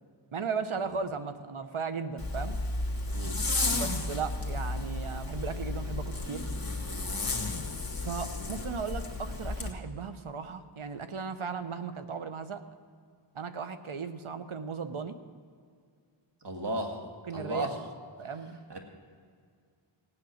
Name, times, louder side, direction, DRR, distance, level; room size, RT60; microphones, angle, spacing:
voice 1, 0.3-2.6 3.7-6.5 8.0-12.6 13.3-15.2 17.3-17.7 18.2-18.6, right 5 dB, 75° right, 9 dB, 0.9 m, -36 dB
Zipper (clothing), 2.2-9.7, left 2 dB, 45° left, 1.8 m, -33 dB
voice 2, 16.4-17.0 17.3-17.8 18.7-18.8, right 1 dB, 55° right, 2 dB, 1.8 m, -34 dB
17.0 x 8.9 x 6.4 m, 2.1 s
wide cardioid pair, 40°, 49 cm